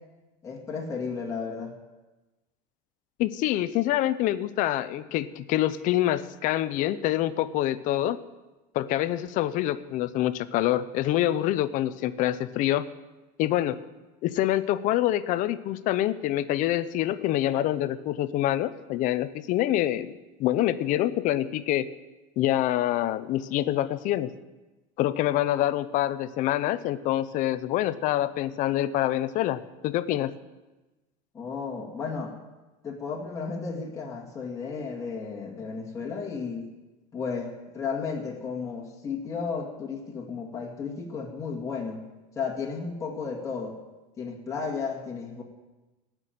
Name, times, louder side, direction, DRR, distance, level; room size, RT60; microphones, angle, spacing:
voice 1, 0.4-1.7 31.3-32.3 32.8-36.7 37.1-42.0 42.4-43.8 44.2-45.4, left 5 dB, 15° left, -2 dB, 2.0 m, -33 dB
voice 2, 3.2-8.2 8.7-12.9 13.4-13.8 14.2-21.9 22.4-24.3 25.0-30.4, left 13 dB, 40° left, 13 dB, 0.6 m, -26 dB
17.5 x 6.2 x 9.1 m, 1.1 s
cardioid pair, 160°, 20 cm